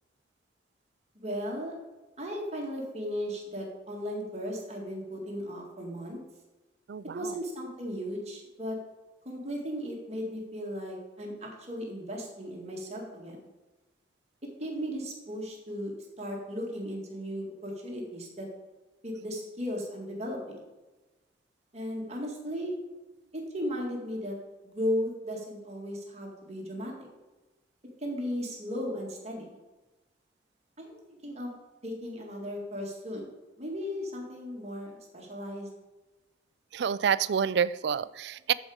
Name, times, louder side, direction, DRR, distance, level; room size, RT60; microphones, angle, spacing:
voice 1, 1.2-1.8 2.2-6.2 7.1-8.8 9.3-13.4 14.6-18.5 19.0-20.6 21.7-22.8 23.3-24.4 24.6-27.1 28.0-29.6 30.8-31.5 31.8-33.3 33.6-35.7, equal, 35° right, 0 dB, 1.9 m, -36 dB
voice 2, 6.9-7.3 36.7-38.5, right 7 dB, 65° right, 17 dB, 0.4 m, -28 dB
14.0 x 5.0 x 4.9 m, 1.1 s
head